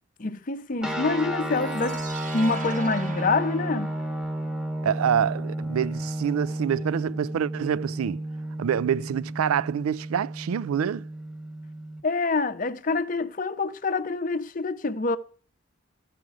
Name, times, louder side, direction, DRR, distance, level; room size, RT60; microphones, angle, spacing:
voice 1, 0.2-2.0 2.3-4.0 12.0-15.2, left 3 dB, 40° left, 0.6 m, -26 dB
sound 1, 0.8-12.0, right 1 dB, 5° right, 1.0 m, -32 dB
sound 2, 1.5-4.6, right 5 dB, 35° right, 0.7 m, -43 dB
voice 2, 4.8-8.2 8.6-11.1, right 8 dB, 85° right, 0.3 m, -26 dB
13.5 x 4.9 x 4.8 m
head